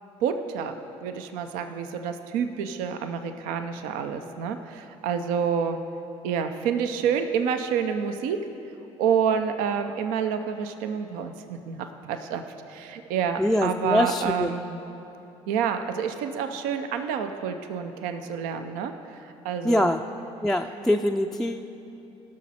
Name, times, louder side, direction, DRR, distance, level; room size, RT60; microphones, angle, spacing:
voice 1, 0.2-0.7 1.0-5.8 6.2-8.4 9.0-12.4 12.7-14.8 15.5-18.9 19.4-19.9, right 7 dB, 75° right, 7 dB, 0.6 m, -28 dB
voice 2, 13.4-14.5 19.6-20.0 20.4-21.7, left 1 dB, 5° left, 5 dB, 0.4 m, -24 dB
17.0 x 6.3 x 4.3 m, 2.9 s
supercardioid pair, 70°, 14 cm